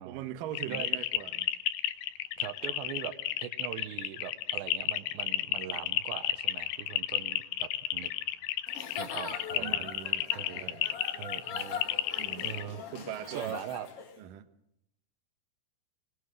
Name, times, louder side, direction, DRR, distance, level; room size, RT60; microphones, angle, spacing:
voice 1, 0.1-1.5 9.5-10.9 12.2-13.6 14.2-14.5, right 12 dB, 70° right, 10 dB, 2.2 m, -41 dB
sound 1, 0.5-12.6, left 13 dB, 80° left, 3.2 m, -32 dB
voice 2, 2.4-3.1 3.4-8.1 9.0-9.9 10.3-10.7 11.2-11.8 12.4-12.8 13.3-13.9, right 11 dB, 85° right, 11 dB, 3.2 m, -41 dB
Giggle / Chuckle chortle, 8.7-14.2, left 6 dB, 45° left, 2.2 m, -41 dB
22.0 x 22.0 x 6.5 m, 0.77 s
omnidirectional pair, 5.0 m